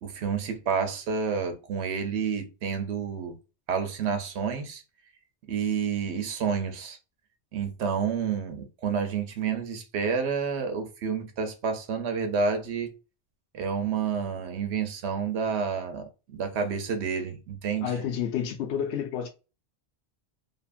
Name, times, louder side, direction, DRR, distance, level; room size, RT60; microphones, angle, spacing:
voice 1, 0.0-3.4 3.7-4.8 5.5-7.0 7.5-13.0 13.5-17.9, right 6 dB, 80° right, 0.9 m, -29 dB
voice 2, 17.8-19.3, left 8 dB, 80° left, 0.9 m, -30 dB
2.6 x 2.5 x 2.4 m
omnidirectional pair, 1.1 m